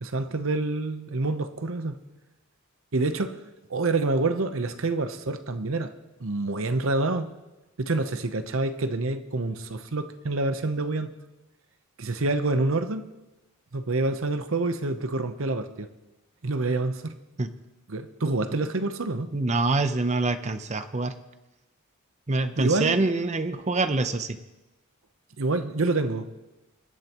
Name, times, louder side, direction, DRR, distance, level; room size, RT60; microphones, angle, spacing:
voice 1, 0.0-2.0 2.9-3.4 3.7-5.9 6.2-7.3 7.8-11.1 12.0-13.0 13.7-15.9 16.4-17.1 17.9-19.3 22.6-23.0 25.4-26.3, right 2 dB, 65° right, 0.8 m, -27 dB
voice 2, 19.3-21.1 22.3-24.4, right 3 dB, 30° right, 0.7 m, -25 dB
24.5 x 11.0 x 3.0 m
head